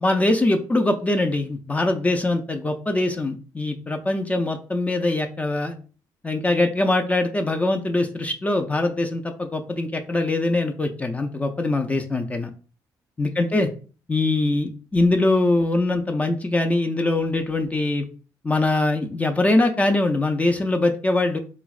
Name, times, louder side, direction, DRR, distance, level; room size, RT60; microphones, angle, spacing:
voice 1, 0.0-5.7 6.2-12.5 13.2-13.7 14.1-18.1 18.4-21.4, left 2 dB, 15° left, 4 dB, 0.3 m, -22 dB
3.8 x 2.0 x 2.3 m, 0.38 s
cardioid pair, 95°, 8 cm